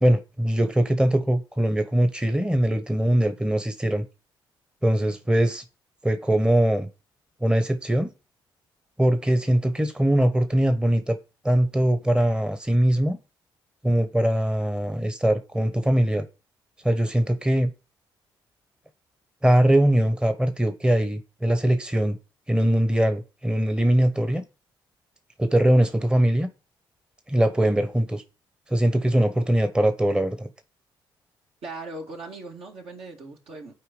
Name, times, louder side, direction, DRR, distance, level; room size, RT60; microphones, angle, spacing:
voice 1, 0.0-4.0 4.8-5.6 6.0-6.9 7.4-8.1 9.0-11.2 11.4-13.2 13.8-16.2 16.8-17.7 19.4-22.2 22.5-24.4 25.4-26.5 27.3-28.2 28.7-30.5, right 1 dB, 10° right, 1.0 m, -21 dB
voice 2, 31.6-33.8, right 2 dB, 60° right, 2.1 m, -39 dB
8.4 x 4.7 x 5.2 m
hypercardioid pair, 45°, 11 cm